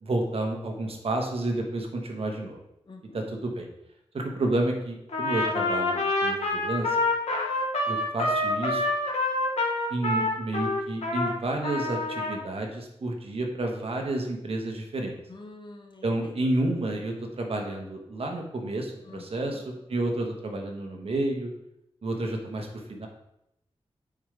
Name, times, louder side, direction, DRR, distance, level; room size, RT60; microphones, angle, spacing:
voice 1, 0.0-2.6 3.1-3.7 4.1-7.0 7.9-8.9 9.9-15.1 16.0-21.5 22.0-23.1, right 2 dB, 65° right, 2 dB, 1.2 m, -30 dB
voice 2, 2.9-3.3 15.3-16.4 19.0-19.6, left 3 dB, 45° left, 3 dB, 1.0 m, -46 dB
Trumpet, 5.1-11.3 11.6-12.4, left 2 dB, 90° left, 1.1 m, -27 dB
7.2 x 4.9 x 3.3 m, 0.82 s
wide cardioid pair, 115°, 11 cm